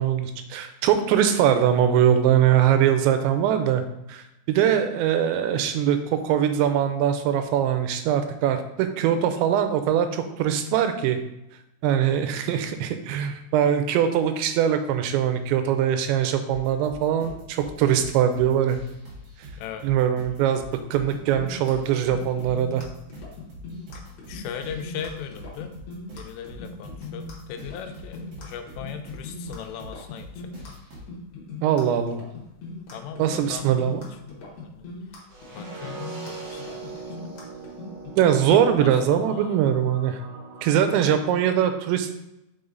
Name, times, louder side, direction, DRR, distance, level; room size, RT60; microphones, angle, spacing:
voice 1, 0.0-3.8 4.1-11.2 11.8-18.8 19.8-22.9 31.6-32.2 33.2-34.1 38.2-40.2 40.6-42.2, right 9 dB, 90° right, 8 dB, 3.0 m, -22 dB
sound 1, 16.5-31.0, equal, 45° right, 2.5 m, -44 dB
voice 2, 19.6-19.9 24.3-25.8 26.1-30.8 32.9-33.9 34.2-34.9 35.5-37.2 38.2-39.7 40.7-41.2, left 8 dB, 85° left, 6 dB, 2.7 m, -39 dB
sound 2, 21.1-39.0, left 3 dB, 55° left, 2.1 m, -40 dB
sound 3, 35.3-41.3, right 3 dB, 60° right, 3.5 m, -41 dB
5.9 x 5.7 x 3.9 m, 0.88 s
omnidirectional pair, 5.1 m